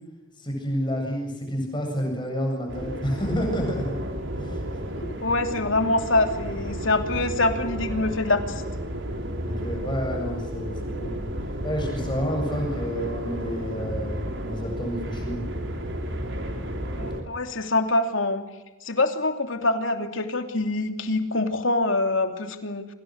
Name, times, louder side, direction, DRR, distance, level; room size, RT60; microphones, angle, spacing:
voice 1, 0.4-4.0 4.4-4.8 9.5-11.1 11.6-15.4, equal, 25° left, 1 dB, 7.8 m, -29 dB
sound 1, 2.7-17.2, equal, 65° right, 4.6 m, -32 dB
voice 2, 5.0-8.6 17.0-18.4 18.8-22.9, left 2 dB, 75° left, 5 dB, 3.0 m, -25 dB
29.0 x 25.5 x 6.6 m, 1.0 s
head